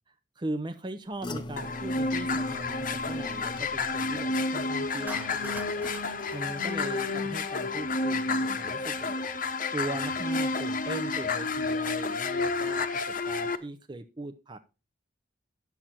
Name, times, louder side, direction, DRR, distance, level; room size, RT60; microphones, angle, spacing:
voice 1, 0.1-5.9 6.3-9.2 9.7-14.6, right 2 dB, 25° right, 7 dB, 0.6 m, -39 dB
sound 1, 1.2-6.4 6.7-7.2 7.6-7.7, left 2 dB, 25° left, 0.7 m, -42 dB
sound 2, 1.6-13.5, left 3 dB, 45° left, 0.9 m, -30 dB
Clapping, 5.1-7.5, right 2 dB, 10° right, 1.0 m, -44 dB
10.5 x 7.5 x 4.2 m, 0.30 s
head